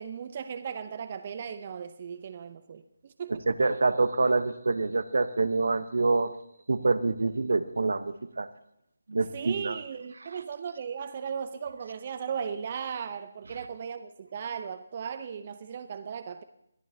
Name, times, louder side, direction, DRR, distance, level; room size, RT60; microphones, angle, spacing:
voice 1, 0.0-2.8 3.2-3.4 9.3-16.4, right 7 dB, 35° right, 11 dB, 0.8 m, -36 dB
voice 2, 3.3-6.3 6.7-8.5 9.1-9.8 10.2-10.4 13.5-13.7, right 3 dB, 65° right, 13 dB, 1.0 m, -26 dB
22.0 x 14.0 x 2.8 m, 0.78 s
figure-of-eight pair, 155°, 0 cm